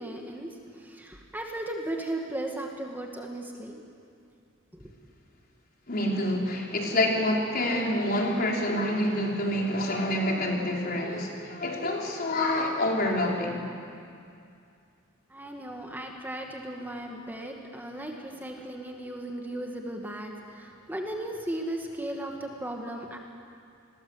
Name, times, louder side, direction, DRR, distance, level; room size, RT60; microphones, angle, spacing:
voice 1, 0.0-3.9 4.7-4.9 15.3-23.2, right 1 dB, 10° right, 1 dB, 2.1 m, -36 dB
voice 2, 5.9-13.6, left 1 dB, 50° left, -1 dB, 4.5 m, -27 dB
29.5 x 21.5 x 8.1 m, 2.4 s
head